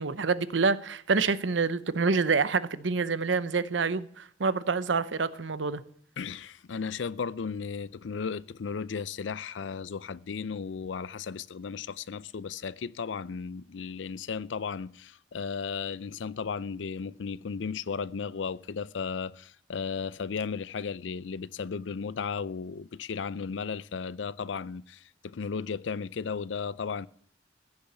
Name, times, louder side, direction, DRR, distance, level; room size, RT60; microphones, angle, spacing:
voice 1, 0.0-5.8, right 4 dB, 85° right, 0.8 m, -27 dB
voice 2, 6.2-27.1, left 5 dB, 80° left, 0.5 m, -35 dB
15.5 x 7.0 x 8.0 m
head